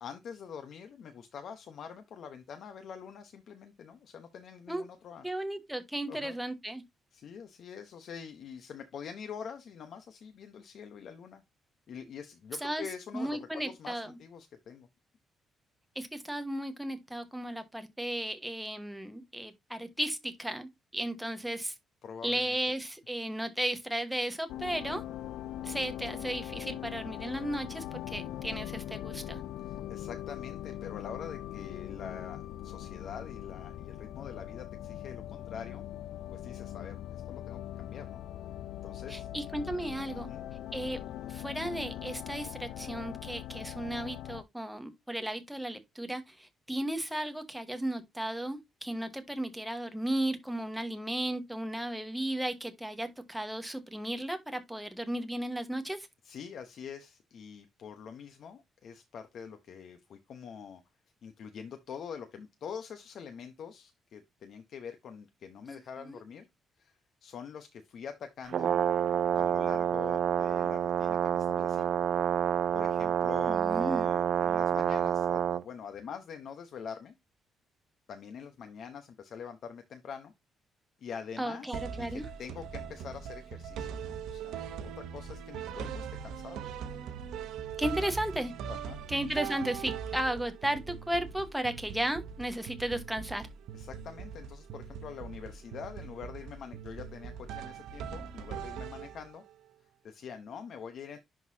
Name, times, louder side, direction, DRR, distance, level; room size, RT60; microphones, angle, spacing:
voice 1, 0.0-5.2 6.1-6.4 7.1-11.4 11.9-14.9 22.0-22.6 29.6-35.8 36.3-38.2 38.8-39.3 40.1-40.4 56.2-60.8 61.2-66.5 66.8-68.8 69.3-71.9 72.7-77.1 78.1-80.3 81.0-86.6 88.7-89.0 93.7-99.4 100.0-101.2, left 7 dB, 60° left, 0.9 m, -45 dB
voice 2, 5.2-6.8 12.6-12.8 13.1-14.2 15.9-21.7 22.2-25.0 25.6-29.4 39.1-40.3 40.7-41.0 41.3-56.1 65.7-66.2 73.5-74.1 81.4-82.2 87.8-88.5 89.1-93.5, right 1 dB, 5° right, 1.3 m, -35 dB
sound 1, 24.5-44.4, left 12 dB, 85° left, 0.3 m, -41 dB
Brass instrument, 68.5-75.6, right 9 dB, 55° right, 0.4 m, -28 dB
sound 2, 81.7-99.5, right 7 dB, 90° right, 0.8 m, -41 dB
11.0 x 3.9 x 2.7 m
cardioid pair, 120°, 0 cm